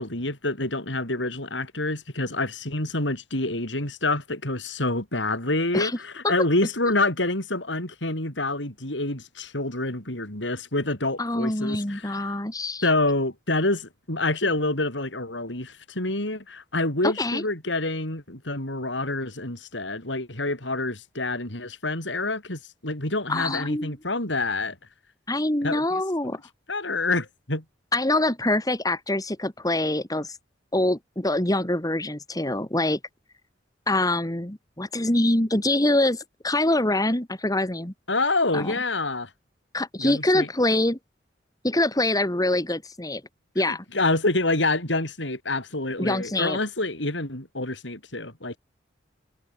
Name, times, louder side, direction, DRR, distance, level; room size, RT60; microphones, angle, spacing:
voice 1, 0.0-12.3 12.8-24.8 25.6-26.4 26.7-27.6 38.1-39.3 40.0-40.5 43.7-48.6, left 2 dB, 85° left, 7.4 m, -27 dB
voice 2, 11.2-12.8 17.0-17.4 23.3-23.9 25.3-26.4 27.9-30.4 30.7-33.0 33.9-37.9 38.5-38.7 39.7-41.0 41.6-43.2 43.5-43.8 46.0-46.6, left 1 dB, 20° left, 2.5 m, -24 dB
head